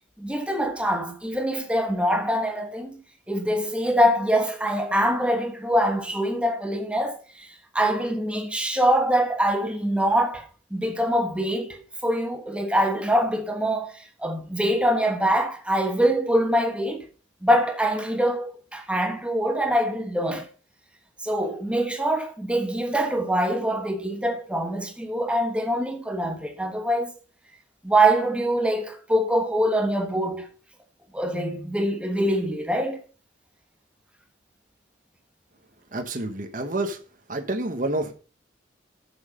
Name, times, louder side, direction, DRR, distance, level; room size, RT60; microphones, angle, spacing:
voice 1, 0.2-3.0 3.3-17.0 17.4-20.5 21.2-27.1 27.8-30.5 31.1-33.0, right 1 dB, 5° right, 1.1 m, -24 dB
voice 2, 35.9-37.0 37.3-38.1, right 2 dB, 40° right, 1.1 m, -28 dB
7.9 x 7.2 x 5.2 m
head